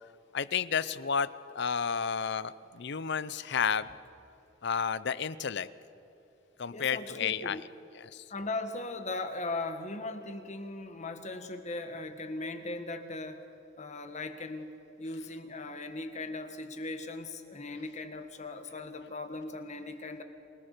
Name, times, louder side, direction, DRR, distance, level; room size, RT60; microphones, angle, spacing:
voice 1, 0.3-1.3 1.5-3.9 4.6-5.7 6.6-7.6 8.0-8.2, left 6 dB, 60° left, 17 dB, 0.6 m, -31 dB
voice 2, 6.7-7.6 8.3-13.4 13.8-14.7 15.0-20.2, left 2 dB, 40° left, 8 dB, 1.7 m, -38 dB
28.0 x 18.5 x 6.8 m, 2.9 s
head